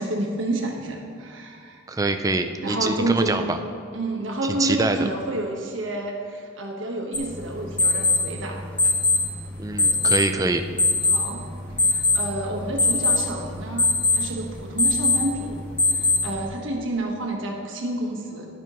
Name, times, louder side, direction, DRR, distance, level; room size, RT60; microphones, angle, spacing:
voice 1, 0.0-1.8 2.6-3.4 3.9-8.9 11.1-11.4 11.8-15.6 15.9-18.5, right 1 dB, 85° right, 0 dB, 1.4 m, -29 dB
voice 2, 1.9-3.6 4.4-5.1 9.6-10.6, right 2 dB, 20° right, 7 dB, 0.4 m, -24 dB
sound 1, 7.1-16.5, left 3 dB, 10° left, 1.7 m, -23 dB
11.0 x 10.5 x 3.1 m, 2.2 s
head